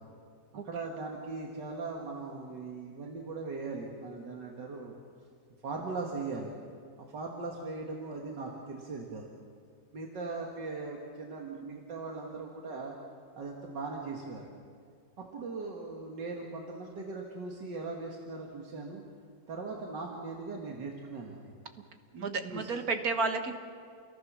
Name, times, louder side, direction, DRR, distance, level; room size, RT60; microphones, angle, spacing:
voice 1, 0.6-5.0 5.6-6.5 7.1-9.3 9.9-13.0 13.4-14.5 15.3-19.0 19.5-21.4 22.1-22.7, right 3 dB, 85° right, -1 dB, 2.5 m, -39 dB
voice 2, 22.2-23.5, right 4 dB, 60° right, 6 dB, 1.9 m, -31 dB
29.5 x 21.5 x 6.3 m, 2.2 s
omnidirectional pair, 1.8 m